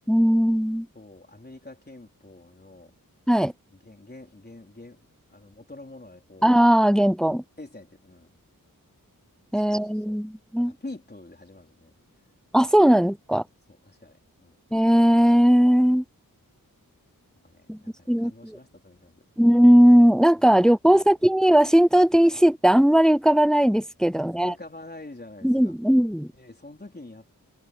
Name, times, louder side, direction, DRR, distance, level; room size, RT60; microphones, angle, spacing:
voice 1, 0.1-0.9 3.3-3.5 6.4-7.4 9.5-10.7 12.5-13.4 14.7-16.0 17.7-17.8 18.1-18.6 19.4-24.5 25.4-26.3, equal, ahead, 0.4 m, -18 dB
voice 2, 0.9-2.9 3.8-6.5 7.6-8.3 9.5-10.2 10.5-11.9 13.7-14.6 15.8-15.9 17.4-19.2 20.4-20.6 20.8-21.2 22.3-22.4 24.4-25.7 26.3-27.3, left 2 dB, 25° left, 4.3 m, -45 dB
wide cardioid pair, 65°, 36 cm